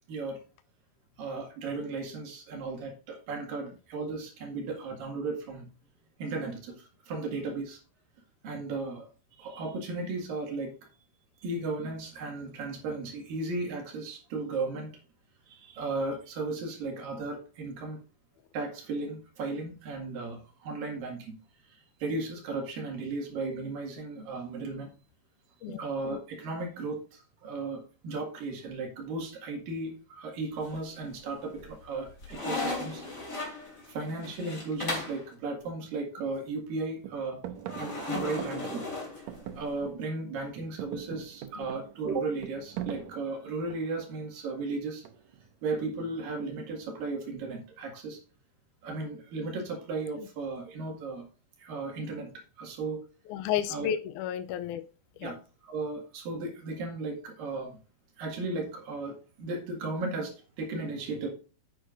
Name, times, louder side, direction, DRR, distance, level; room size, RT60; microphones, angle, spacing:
voice 1, 0.1-0.4 1.2-5.7 6.2-7.8 8.4-9.1 9.4-10.8 11.4-14.9 15.5-18.0 18.5-21.4 21.7-24.9 25.7-33.0 33.9-37.4 37.8-38.8 39.5-45.0 45.6-48.2 48.8-51.3 51.6-52.3 52.6-53.0 53.7-53.9 55.2-55.4 55.6-57.7 58.2-61.3, right 3 dB, 85° right, 2 dB, 3.6 m, -35 dB
sound 1, 30.6-31.2 31.6-35.2 37.7-39.7, left 3 dB, 25° left, 3.1 m, -36 dB
sound 2, 35.6-35.7 36.2-36.7 37.0-40.2 40.5-44.1 45.0-45.5, right 11 dB, 70° right, 1.8 m, -42 dB
voice 2, 53.3-54.8 55.2-55.3, left 10 dB, 80° left, 10 dB, 1.9 m, -31 dB
9.9 x 8.8 x 2.5 m, 0.35 s
omnidirectional pair, 3.9 m